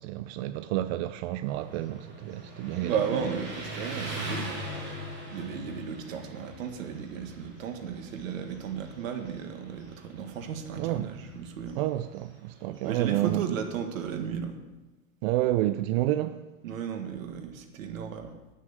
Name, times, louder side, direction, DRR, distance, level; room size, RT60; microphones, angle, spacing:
voice 1, 0.0-3.0 10.8-11.2 11.8-13.6 15.2-16.4, right 14 dB, 50° right, 0.5 m, -29 dB
Motorcycle, 1.5-14.1, equal, 25° right, 4.6 m, -42 dB
voice 2, 2.8-4.6 5.3-11.8 12.8-14.6 16.6-18.3, right 7 dB, 70° right, 1.8 m, -34 dB
9.0 x 6.4 x 8.1 m
hypercardioid pair, 110°, 41 cm